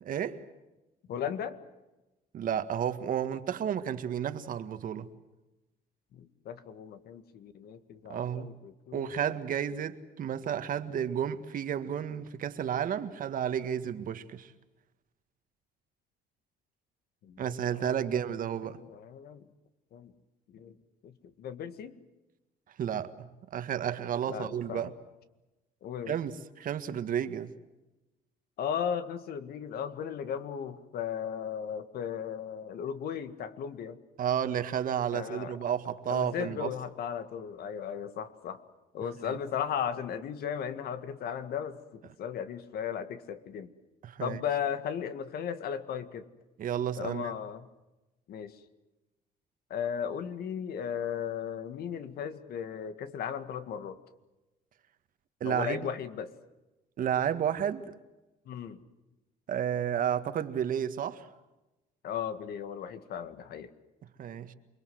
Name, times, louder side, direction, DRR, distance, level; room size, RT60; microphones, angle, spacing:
voice 1, 0.0-0.4 2.3-5.1 8.1-8.5 8.9-14.5 17.4-18.8 22.8-23.1 23.5-24.9 26.1-27.5 34.2-36.7 39.2-39.4 44.0-44.4 46.6-47.3 55.4-55.8 57.0-57.9 59.5-61.3 64.2-64.5, right 9 dB, 55° right, 1.8 m, -32 dB
voice 2, 1.1-1.6 6.1-9.3 17.2-18.2 18.6-19.5 19.9-20.1 20.5-20.8 21.0-22.0 24.3-24.9 25.8-26.2 28.6-34.0 35.1-35.6 36.1-38.6 38.9-43.7 44.2-46.3 47.0-47.7 48.3-48.6 49.7-54.0 55.4-56.4 58.5-58.8 62.0-63.7, left 8 dB, 65° left, 1.9 m, -36 dB
28.5 x 22.0 x 7.9 m
cardioid pair, 110°, 17 cm